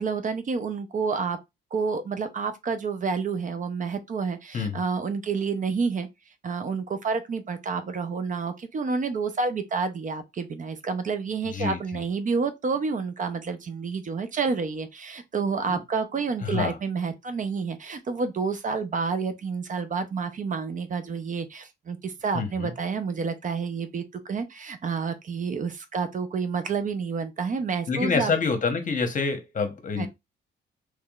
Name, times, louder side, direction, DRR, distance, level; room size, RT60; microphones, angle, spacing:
voice 1, 0.0-1.4 1.7-6.1 6.4-28.3 30.0-30.1, right 5 dB, 40° right, 0.6 m, -29 dB
voice 2, 11.5-12.0 15.7-15.8 16.4-16.8 22.3-22.7 27.9-30.1, left 5 dB, 40° left, 0.9 m, -27 dB
3.5 x 3.2 x 2.3 m
cardioid pair, 90°, 20 cm